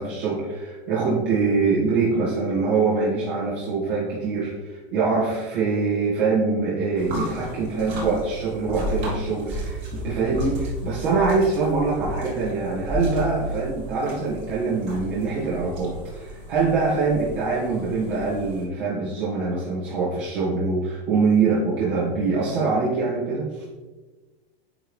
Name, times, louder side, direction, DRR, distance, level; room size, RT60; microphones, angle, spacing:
voice 1, 0.0-23.6, right 4 dB, 60° right, -8 dB, 2.2 m, -24 dB
sound 1, 7.0-18.6, equal, 35° right, 2.0 m, -33 dB
9.8 x 3.6 x 3.4 m, 1.2 s
supercardioid pair, 135°, 31 cm